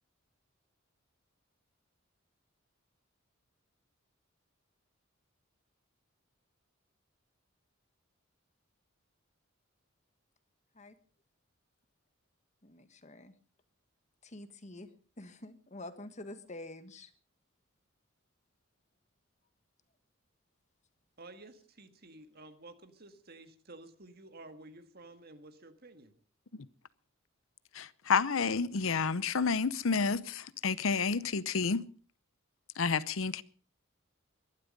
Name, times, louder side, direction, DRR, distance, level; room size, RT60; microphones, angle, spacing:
voice 1, 12.6-13.3 14.2-14.9 15.2-17.1, left 2 dB, 35° left, 1.6 m, -47 dB
voice 2, 21.2-26.1, right 2 dB, 50° right, 1.8 m, -52 dB
voice 3, 27.7-31.9 32.7-33.4, left 5 dB, 75° left, 0.8 m, -30 dB
22.0 x 12.0 x 5.3 m
head